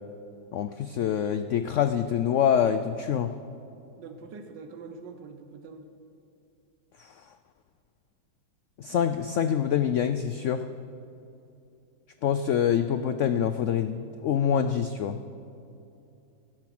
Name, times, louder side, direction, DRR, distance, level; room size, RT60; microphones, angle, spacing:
voice 1, 0.5-3.3 7.0-7.1 8.8-10.6 12.2-15.2, left 8 dB, 85° left, 10 dB, 0.6 m, -25 dB
voice 2, 4.0-5.9, right 4 dB, 85° right, 7 dB, 1.6 m, -44 dB
17.5 x 10.5 x 6.0 m, 2.7 s
omnidirectional pair, 1.9 m